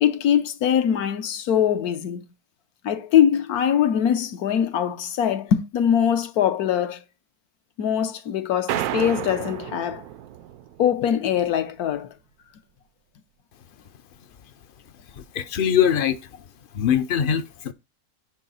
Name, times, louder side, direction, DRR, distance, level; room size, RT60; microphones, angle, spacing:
voice 1, 0.0-2.2 2.8-7.0 7.8-10.0 10.8-12.1, left 9 dB, 85° left, 1.3 m, -22 dB
sound 1, 8.7-11.1, right 12 dB, 90° right, 1.1 m, -31 dB
voice 2, 15.3-16.2 16.7-17.7, left 9 dB, 65° left, 0.5 m, -21 dB
9.5 x 4.7 x 4.0 m
omnidirectional pair, 1.6 m